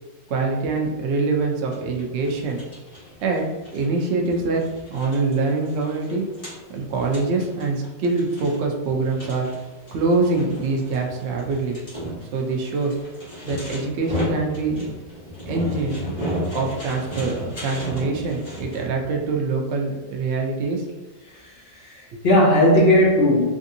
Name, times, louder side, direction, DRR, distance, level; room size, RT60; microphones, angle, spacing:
voice 1, 0.3-2.6 3.2-3.4 3.7-4.6 4.9-6.2 6.7-9.5 9.9-11.8 12.3-12.9 13.4-14.9 15.4-16.0 16.5-20.9 22.1-22.2, right 3 dB, 70° right, 1 dB, 0.6 m, -24 dB
sound 1, 1.7-18.9, equal, 25° left, 1.1 m, -34 dB
voice 2, 21.3-23.5, left 1 dB, 70° left, -4 dB, 0.5 m, -18 dB
3.3 x 2.6 x 2.6 m, 1.2 s
omnidirectional pair, 1.8 m